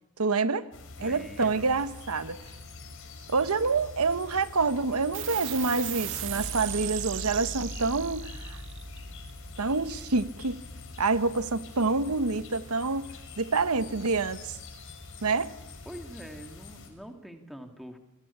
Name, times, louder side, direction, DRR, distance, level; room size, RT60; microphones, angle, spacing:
voice 1, 0.2-0.7 1.0-2.4 3.3-8.6 9.6-10.6 11.0-13.1 13.4-14.6 15.2-15.5, right 4 dB, 85° right, 1.1 m, -27 dB
sound 1, 0.7-16.9, left 3 dB, 60° left, 5.3 m, -45 dB
voice 2, 0.9-1.7 15.9-18.0, equal, ahead, 2.5 m, -44 dB
sound 2, 5.1-12.0, right 7 dB, 60° right, 2.1 m, -38 dB
28.0 x 21.5 x 8.6 m
head